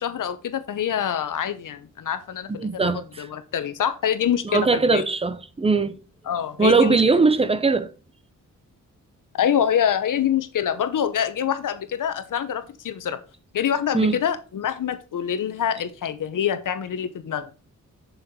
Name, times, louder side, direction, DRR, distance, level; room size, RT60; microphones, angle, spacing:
voice 1, 0.0-5.0 6.3-7.2 9.4-13.2 13.5-17.5, left 9 dB, 80° left, 1.0 m, -25 dB
voice 2, 2.5-3.3 4.4-6.0 6.6-7.9 13.9-14.2, right 4 dB, 20° right, 0.6 m, -20 dB
7.0 x 5.7 x 5.4 m
wide cardioid pair, 170°, 32 cm